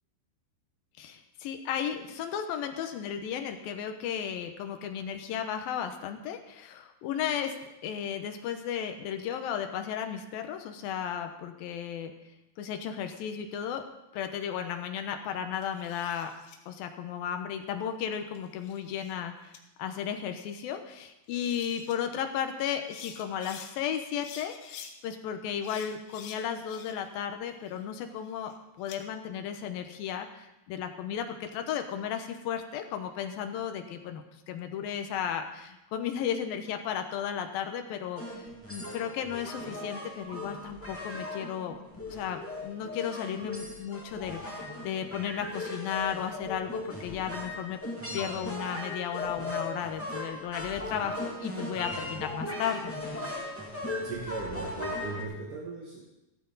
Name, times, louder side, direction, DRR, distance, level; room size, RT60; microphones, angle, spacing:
voice 1, 1.0-7.6 7.8-12.1 12.6-13.8 14.1-16.3 16.7-28.5 28.8-41.8 42.1-47.8 48.1-52.8, left 8 dB, 70° left, 6 dB, 2.5 m, -34 dB
sound 1, 15.5-16.6 18.1-19.2 19.5-19.6 21.0-21.1 21.3-21.9 22.7-23.7 24.2-24.9 25.6-27.1 27.5-29.0, left 7 dB, 90° left, 3.4 m, -48 dB
sound 2, 38.2-55.2, left 2 dB, 10° left, 0.7 m, -38 dB
voice 2, 54.0-56.0, right 3 dB, 55° right, -2 dB, 1.6 m, -37 dB
16.0 x 13.5 x 4.1 m, 0.94 s
omnidirectional pair, 4.9 m